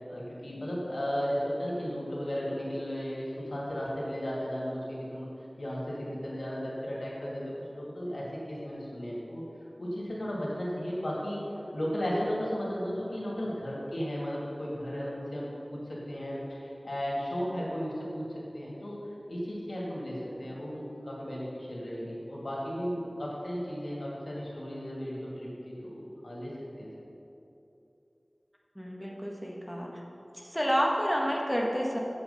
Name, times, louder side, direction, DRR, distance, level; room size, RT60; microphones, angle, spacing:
voice 1, 0.0-5.3 5.6-9.5 9.8-11.4 11.7-19.0 19.3-26.9, equal, 75° left, -5 dB, 2.4 m, -35 dB
voice 2, 28.7-30.0 30.3-32.0, equal, ahead, -2 dB, 1.2 m, -29 dB
7.9 x 7.3 x 5.5 m, 2.9 s
wide cardioid pair, 45°, 0 cm